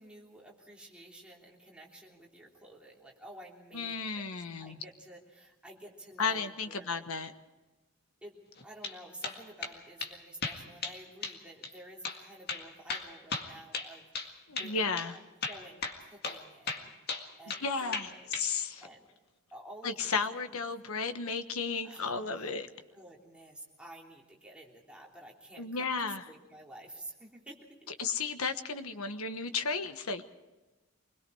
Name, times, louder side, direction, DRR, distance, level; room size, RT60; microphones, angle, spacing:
voice 1, 0.0-7.1 8.2-8.4 8.6-15.2 15.5-18.4 18.8-19.1 19.5-20.2 20.5-20.6 21.8-22.6 22.9-27.9 29.0-29.1, right 1 dB, 5° right, -3 dB, 3.3 m, -51 dB
voice 2, 3.7-4.8 6.2-7.3 14.5-15.1 17.5-18.1 18.4-18.8 19.8-22.7 25.6-26.2 28.0-30.2, left 4 dB, 80° left, 9 dB, 1.3 m, -33 dB
sound 1, 8.6-9.0 9.2-9.7 10.0-10.1 10.4-11.0 11.2-11.4 11.6-11.7 12.0-12.2 12.5-14.3 14.6-14.7 15.0-15.1 15.4-16.4 16.7-17.7 17.9-18.5, left 4 dB, 50° left, 1.9 m, -36 dB
25.5 x 21.0 x 4.8 m, 1.1 s
head